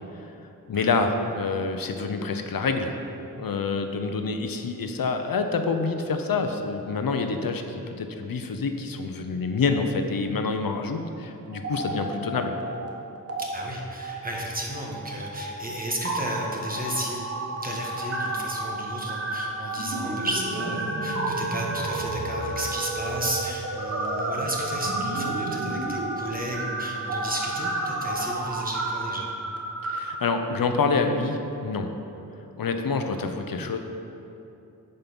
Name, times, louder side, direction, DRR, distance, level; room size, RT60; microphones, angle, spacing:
voice 1, 0.7-3.0 3.4-12.6 29.8-31.9 32.6-33.8, left 4 dB, 70° left, 6 dB, 0.8 m, -27 dB
sound 1, 11.5-12.9 13.2-13.4 14.0-30.0, right 2 dB, 40° right, 1.1 m, -31 dB
voice 2, 13.4-17.3 17.6-29.3, right 1 dB, 25° right, -2 dB, 1.5 m, -33 dB
8.9 x 5.5 x 6.1 m, 2.9 s
wide cardioid pair, 95°, 36 cm